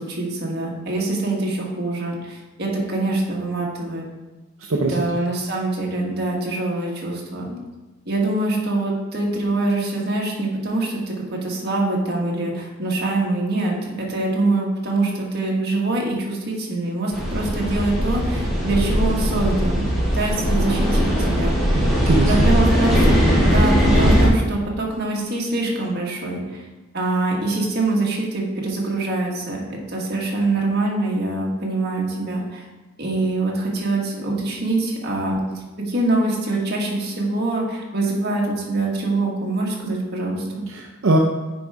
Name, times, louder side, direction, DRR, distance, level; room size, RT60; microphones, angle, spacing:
voice 1, 0.0-4.1 4.9-7.6 8.0-19.8 20.1-21.5 22.3-23.1 23.4-26.7 26.9-32.6 33.0-35.4 35.9-40.6, right 2 dB, 55° right, -2 dB, 1.6 m, -24 dB
voice 2, 4.7-5.1 21.7-22.3 40.7-41.2, right 2 dB, 75° right, 0 dB, 0.6 m, -21 dB
sound 1, 17.1-24.3, equal, ahead, 2.0 m, -19 dB
9.2 x 4.8 x 3.5 m, 1.1 s
head